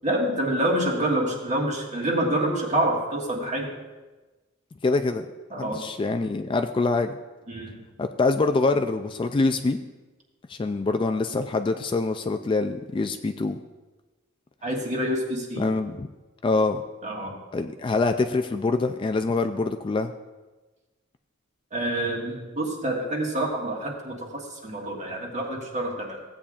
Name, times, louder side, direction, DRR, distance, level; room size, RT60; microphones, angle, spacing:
voice 1, 0.0-3.8 5.5-5.9 7.5-7.8 14.6-15.7 17.0-17.4 21.7-26.2, right 1 dB, 35° right, -1 dB, 1.7 m, -27 dB
voice 2, 4.8-5.3 5.6-7.2 8.0-9.8 10.5-13.6 15.6-16.1 16.4-16.8 17.5-20.1, left 3 dB, 25° left, 7 dB, 0.3 m, -25 dB
15.5 x 8.5 x 2.4 m, 1.2 s
head